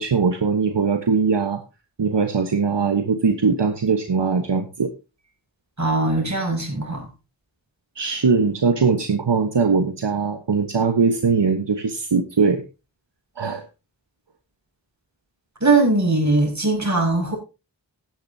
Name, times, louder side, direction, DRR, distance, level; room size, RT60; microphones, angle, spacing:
voice 1, 0.0-1.6 2.0-4.9 7.9-12.6 13.4-13.6, right 5 dB, 70° right, 1.2 m, -21 dB
voice 2, 5.8-7.1 15.6-17.4, right 2 dB, 40° right, 6.0 m, -20 dB
15.5 x 10.5 x 2.7 m
wide cardioid pair, 50°, 43 cm